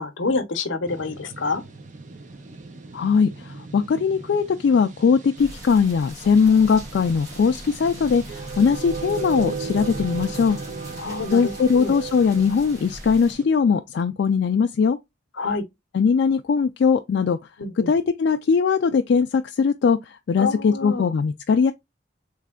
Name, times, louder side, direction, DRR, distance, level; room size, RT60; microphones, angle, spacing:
voice 1, 0.0-1.6 11.0-12.0 15.4-15.6 17.6-17.9 20.4-21.1, left 3 dB, 80° left, 0.7 m, -27 dB
sound 1, 0.9-13.4, right 4 dB, 40° right, 0.6 m, -37 dB
voice 2, 2.9-10.6 11.3-15.0 15.9-17.4 17.9-21.7, left 5 dB, 60° left, 0.3 m, -20 dB
sound 2, 5.4-13.3, right 1 dB, 20° right, 1.6 m, -41 dB
3.3 x 3.2 x 3.6 m
head